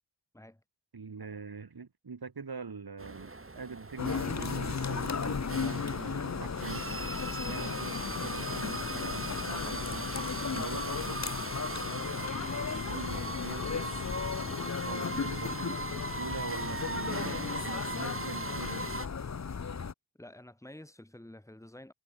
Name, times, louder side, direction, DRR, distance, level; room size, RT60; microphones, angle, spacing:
voice 1, 0.9-7.1 7.5-11.2 11.8-12.1 12.9-13.9 14.4-18.9, right 5 dB, 55° right, 1.7 m, -44 dB
sound 1, 3.0-19.1, right 3 dB, 30° right, 1.7 m, -39 dB
sound 2, 4.0-19.9, left 6 dB, 40° left, 0.7 m, -35 dB
voice 2, 20.2-21.9, left 1 dB, 5° left, 1.5 m, -50 dB
wide cardioid pair, 75°, 45 cm